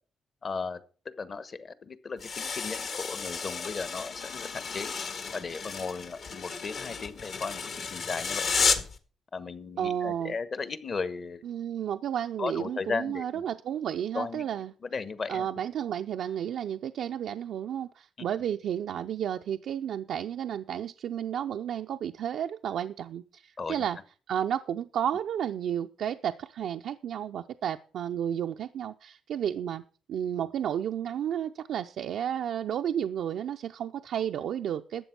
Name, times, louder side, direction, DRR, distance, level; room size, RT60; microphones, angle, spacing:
voice 1, 0.4-0.8 1.0-4.9 5.3-8.7 9.3-11.4 12.4-13.5 14.1-15.5 18.2-18.3 23.6-23.9, left 4 dB, 45° left, 14 dB, 1.1 m, -36 dB
sound 1, 2.2-9.0, left 5 dB, 65° left, 1.8 m, -32 dB
voice 2, 9.8-10.3 11.4-14.7 15.3-24.0 24.3-29.8 30.1-35.0, right 9 dB, 80° right, 6 dB, 0.5 m, -32 dB
12.5 x 7.9 x 5.9 m, 0.39 s
cardioid pair, 85°, 0 cm